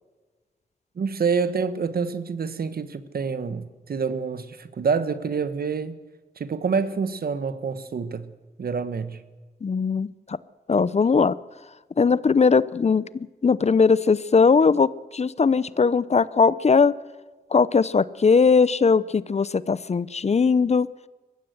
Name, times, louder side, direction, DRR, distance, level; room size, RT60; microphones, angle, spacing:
voice 1, 1.0-6.0 6.4-8.3 8.6-9.2, right 5 dB, 70° right, 1.3 m, -27 dB
voice 2, 9.6-10.4 10.7-11.3 12.0-16.9 17.5-20.9, left 5 dB, 45° left, 0.6 m, -20 dB
21.0 x 15.5 x 8.0 m
cardioid pair, 70°, 16 cm